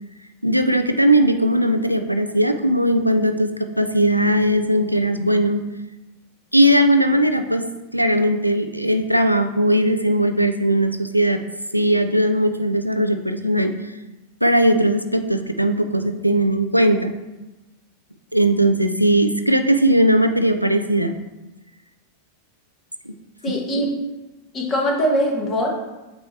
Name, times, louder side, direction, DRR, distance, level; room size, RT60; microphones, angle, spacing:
voice 1, 0.4-5.6 6.5-7.6 7.9-11.4 11.7-13.7 14.4-17.1 18.3-21.1 23.1-23.2, right 1 dB, 90° right, 8 dB, 0.4 m, -18 dB
voice 2, 23.4-23.9 24.5-25.7, equal, 25° left, 0 dB, 1.4 m, -21 dB
7.9 x 3.1 x 4.2 m, 1.0 s
figure-of-eight pair, 90°, 0 cm